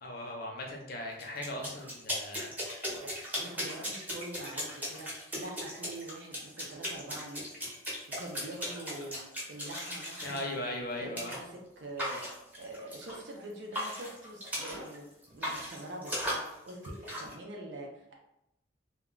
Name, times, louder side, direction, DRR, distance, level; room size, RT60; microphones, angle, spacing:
voice 1, 0.0-2.5 10.2-11.4, left 1 dB, 55° left, 1 dB, 0.7 m, -38 dB
sound 1, 1.2-10.4 11.2-11.4 12.0-13.4 13.7-15.0 15.2-17.3, equal, 10° right, 0.8 m, -38 dB
voice 2, 2.9-9.2 9.5-10.7 11.0-12.2 12.6-15.1 15.3-18.2, right 1 dB, 70° right, 0 dB, 0.5 m, -44 dB
2.2 x 2.2 x 3.7 m, 0.85 s
head